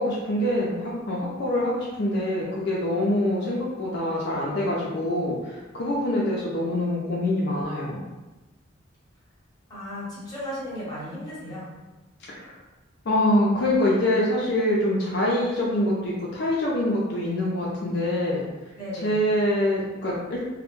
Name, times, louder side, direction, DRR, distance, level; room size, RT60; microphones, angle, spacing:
voice 1, 0.0-8.0 12.3-12.5 13.1-18.4 19.0-20.5, left 1 dB, 55° left, -5 dB, 0.4 m, -25 dB
voice 2, 9.7-11.7 18.8-19.2, equal, 20° left, -9 dB, 0.9 m, -35 dB
2.1 x 2.1 x 3.0 m, 1.1 s
head